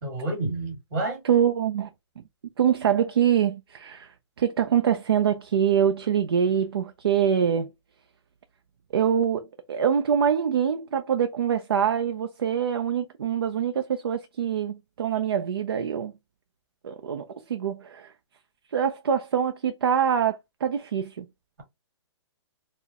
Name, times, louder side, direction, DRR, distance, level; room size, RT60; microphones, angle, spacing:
voice 1, 0.0-1.2, right 2 dB, 40° right, 2.1 m, -29 dB
voice 2, 1.2-1.9 2.6-7.7 8.9-16.1 16.8-18.1 18.7-21.3, right 8 dB, 55° right, 0.5 m, -24 dB
4.4 x 2.1 x 2.8 m
hypercardioid pair, 180°, 15 cm